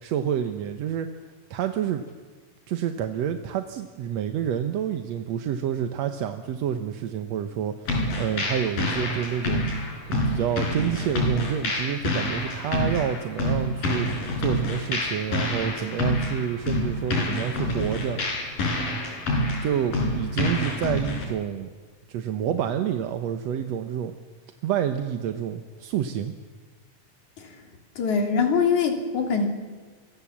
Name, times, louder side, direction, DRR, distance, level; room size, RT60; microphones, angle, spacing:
voice 1, 0.0-1.1 1.5-2.1 2.7-18.3 19.6-21.7 22.1-24.1 24.6-26.3, right 9 dB, 65° right, 7 dB, 1.9 m, -28 dB
sound 1, 7.9-21.2, left 1 dB, 80° left, 6.6 m, -27 dB
voice 2, 28.0-29.5, left 5 dB, 60° left, 4 dB, 4.4 m, -22 dB
28.5 x 24.0 x 7.4 m, 1.4 s
omnidirectional pair, 3.9 m